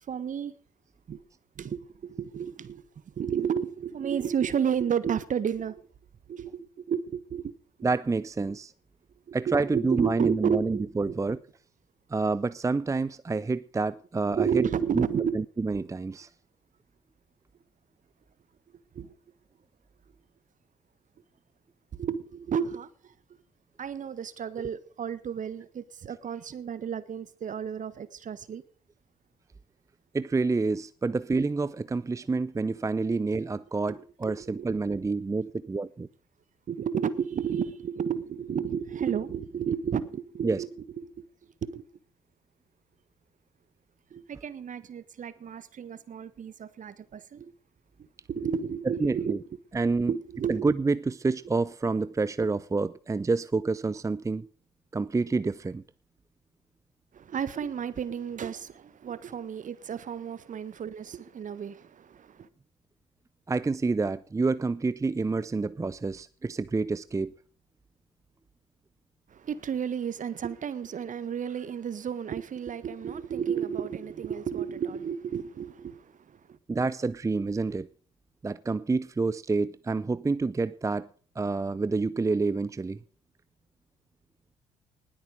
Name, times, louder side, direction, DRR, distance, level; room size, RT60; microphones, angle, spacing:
voice 1, 0.1-0.5 1.1-1.2 1.6-5.8 6.3-7.5 9.3-11.1 14.3-15.4 18.9-19.1 21.9-23.1 23.8-28.6 34.2-34.7 36.7-40.7 41.0-41.2 41.6-41.8 44.1-47.5 48.3-49.3 50.1-50.6 57.1-62.5 69.3-76.6, right 7 dB, 45° right, 1.5 m, -32 dB
voice 2, 7.8-8.7 9.3-11.4 12.1-14.7 14.9-15.1 15.3-16.3 30.1-36.1 40.4-40.6 49.0-49.4 49.7-50.1 50.5-54.5 54.9-55.8 63.5-67.3 76.7-77.9 78.4-81.1 81.4-83.0, right 3 dB, 20° right, 0.6 m, -28 dB
19.5 x 8.7 x 6.5 m
hypercardioid pair, 50°, 18 cm